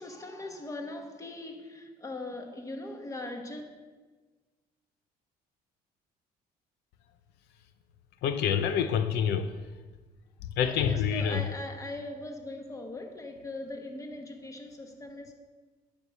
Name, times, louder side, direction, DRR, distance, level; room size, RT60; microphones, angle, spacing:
voice 1, 0.0-3.6 10.6-15.3, left 2 dB, 20° left, 4 dB, 1.3 m, -40 dB
voice 2, 8.2-9.5 10.6-11.5, left 8 dB, 85° left, 10 dB, 0.6 m, -27 dB
9.9 x 4.8 x 6.8 m, 1.3 s
cardioid pair, 110°, 17 cm